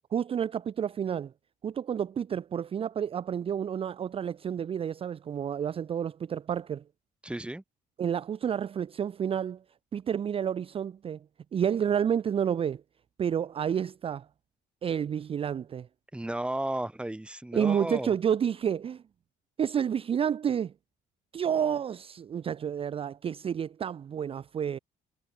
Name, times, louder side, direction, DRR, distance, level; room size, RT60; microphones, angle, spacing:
voice 1, 0.1-1.3 1.6-6.8 8.0-9.6 9.9-11.2 11.5-12.8 13.2-14.3 14.8-15.9 17.5-19.0 19.6-20.7 21.3-24.8, right 8 dB, 35° right, 0.5 m, -30 dB
voice 2, 7.2-7.6 16.1-18.1, right 1 dB, 5° right, 1.7 m, -33 dB
cardioid pair, 110°, 17 cm